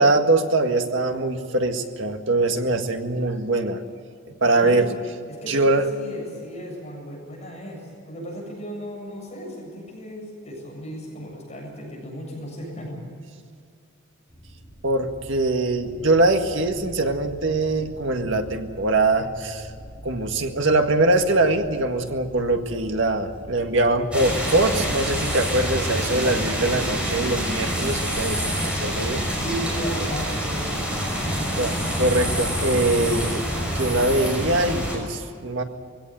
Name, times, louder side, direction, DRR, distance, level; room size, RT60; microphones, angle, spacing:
voice 1, 0.0-3.8 4.3-4.8 5.5-5.8 14.8-19.7 20.0-29.3 31.6-35.6, right 2 dB, 70° right, 5 dB, 1.9 m, -22 dB
voice 2, 4.4-4.8 5.3-13.0 29.4-30.8 31.2-31.6, equal, 35° left, -2 dB, 7.6 m, -35 dB
sound 1, 14.3-28.2, equal, 15° left, 6.2 m, -43 dB
sound 2, 24.1-34.9, equal, 5° right, 6.0 m, -26 dB
22.0 x 17.0 x 9.2 m, 2.2 s
head